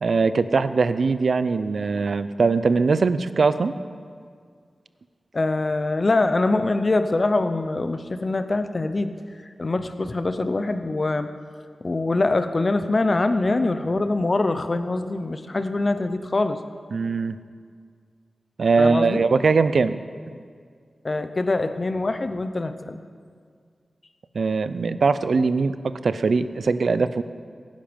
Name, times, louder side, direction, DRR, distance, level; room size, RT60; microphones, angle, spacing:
voice 1, 0.0-3.7 16.9-17.4 18.6-20.0 24.3-27.2, right 4 dB, 75° right, 13 dB, 0.5 m, -21 dB
voice 2, 5.3-9.1 9.6-11.3 11.8-16.6 18.8-19.2 21.0-23.0, left 2 dB, 40° left, 9 dB, 0.7 m, -23 dB
17.0 x 10.5 x 5.2 m, 2.1 s
wide cardioid pair, 95°, 0 cm